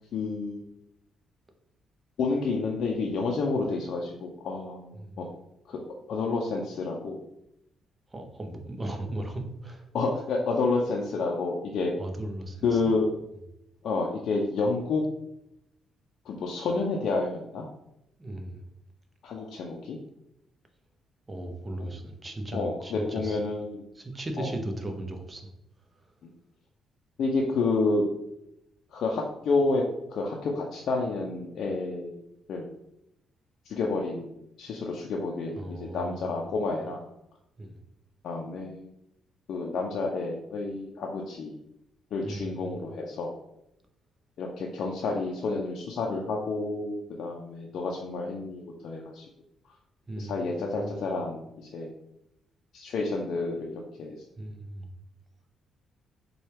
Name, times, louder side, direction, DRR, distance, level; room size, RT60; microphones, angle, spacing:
voice 1, 0.1-0.6 2.2-5.3 5.7-5.8 6.1-7.2 9.9-11.9 12.6-13.1 13.8-15.0 16.3-17.7 19.2-20.0 22.5-23.8 24.4-24.5 26.2-26.3 27.2-28.1 28.9-29.8 30.1-32.2 32.5-32.6 33.7-37.0 38.2-38.9 39.5-41.5 42.1-43.3 44.4-49.3 50.2-51.9 52.7-53.7 54.0-54.2, left 3 dB, 70° left, -1 dB, 0.5 m, -29 dB
voice 2, 8.1-9.9 12.0-12.8 18.2-18.6 21.3-23.4 23.9-25.5 35.6-36.9 37.6-37.8 42.2-42.8 50.1-51.1 54.4-54.9, right 1 dB, 25° right, 4 dB, 0.6 m, -37 dB
4.2 x 2.3 x 3.2 m, 0.82 s
cardioid pair, 90°, 0 cm